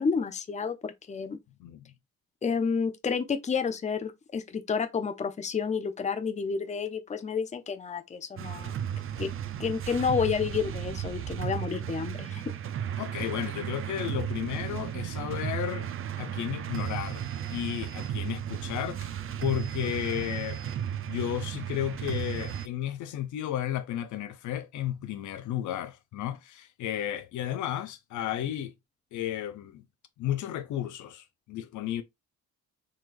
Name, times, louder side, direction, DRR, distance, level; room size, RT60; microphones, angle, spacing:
voice 1, 0.0-1.4 2.4-8.8 9.2-9.3 9.6-12.4, left 6 dB, 25° left, 0.6 m, -30 dB
sound 1, 8.4-22.7, right 9 dB, 45° right, 0.5 m, -34 dB
voice 2, 13.0-15.9 16.2-17.2 17.5-19.1 19.4-20.6 21.0-28.7 29.1-29.8 30.2-32.0, left 11 dB, 75° left, 0.6 m, -33 dB
3.9 x 3.1 x 2.5 m
cardioid pair, 90°, 30 cm